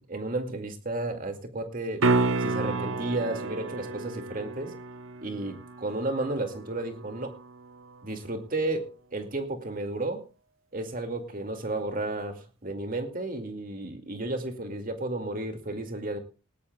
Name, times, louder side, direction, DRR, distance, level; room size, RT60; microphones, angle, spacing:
voice 1, 0.0-2.0 2.4-4.7 5.2-7.4 8.0-10.3 10.7-16.2, right 2 dB, 40° right, 6 dB, 2.2 m, -33 dB
sound 1, 2.0-8.0 12.7-12.8, right 3 dB, 75° right, 0.8 m, -31 dB
18.5 x 17.5 x 2.3 m, 0.31 s
head